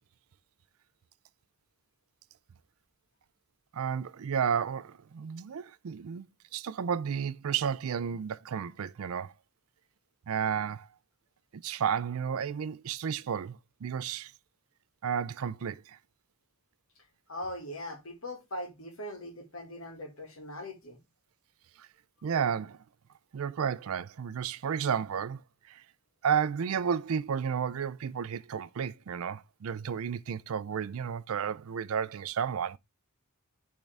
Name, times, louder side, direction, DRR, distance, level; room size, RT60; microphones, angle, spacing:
voice 1, 3.7-6.2 6.5-9.3 10.3-10.9 11.5-14.3 15.0-16.0 21.8-21.9 22.2-22.8 23.3-25.4 25.7-25.8 26.2-32.8, right 7 dB, 70° right, 0.4 m, -32 dB
voice 2, 17.3-21.0, left 1 dB, 65° left, 1.9 m, -40 dB
10.5 x 3.7 x 3.4 m
head